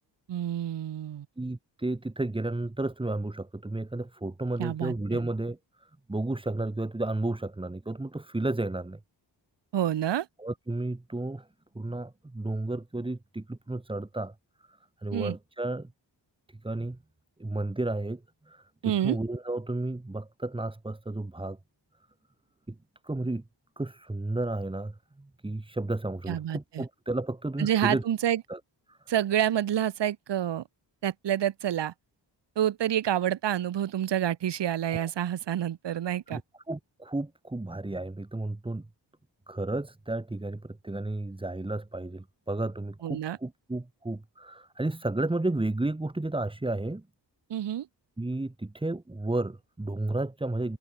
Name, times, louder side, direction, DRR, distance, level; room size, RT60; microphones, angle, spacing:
voice 1, 0.3-1.3 4.6-4.9 9.7-10.3 15.1-15.3 18.8-19.2 26.3-26.8 27.6-28.4 29.1-30.6 31.0-31.9 32.6-36.4 43.0-43.4 47.5-47.9, right 11 dB, 65° right, 1.0 m, -28 dB
voice 2, 1.4-9.0 10.4-11.5 11.7-14.3 15.0-15.9 16.5-17.0 17.4-21.6 22.7-22.8 23.0-23.4 23.8-28.0 28.5-28.6 28.9-29.0 34.9-35.1 36.3-36.4 36.7-38.9 39.5-47.1 48.2-50.8, right 2 dB, 10° right, 1.2 m, -32 dB
wide cardioid pair, 90°, 45 cm